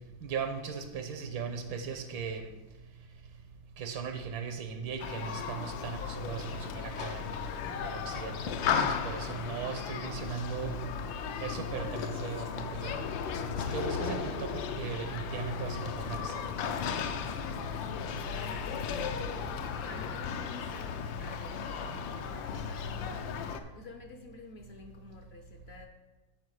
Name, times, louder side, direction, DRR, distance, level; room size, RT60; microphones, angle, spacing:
voice 1, 0.2-2.5 3.8-7.4 7.8-10.8 11.4-13.0 13.7-16.4, right 6 dB, 80° right, 6 dB, 1.7 m, -38 dB
Human group actions, 5.0-23.6, left 6 dB, 80° left, 1.4 m, -35 dB
sound 1, 11.8-15.3, right 9 dB, 55° right, 0.7 m, -54 dB
voice 2, 17.7-25.9, left 3 dB, 60° left, 4 dB, 0.6 m, -50 dB
9.9 x 4.6 x 6.3 m, 1.1 s
omnidirectional pair, 2.1 m